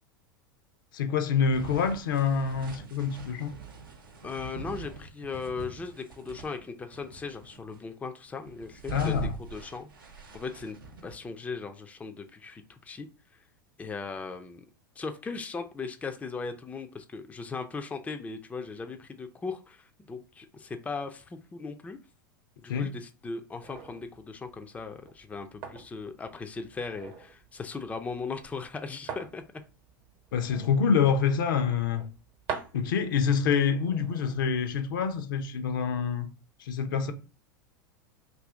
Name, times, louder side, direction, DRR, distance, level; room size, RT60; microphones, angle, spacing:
voice 1, 0.9-3.6 8.9-9.3 22.7-22.9 30.3-32.0 32.7-36.3 36.6-37.1, left 6 dB, 70° left, 0.6 m, -26 dB
sound 1, 1.5-6.6 6.9-7.8 8.3-11.1, right 3 dB, 85° right, 0.7 m, -43 dB
voice 2, 4.2-9.9 10.3-10.8 11.0-13.1 13.8-14.6 15.0-22.0 22.6-29.4, left 4 dB, 10° left, 0.4 m, -38 dB
sound 2, 23.6-35.5, right 6 dB, 50° right, 0.8 m, -46 dB
2.7 x 2.6 x 3.5 m
hypercardioid pair, 95°, 11 cm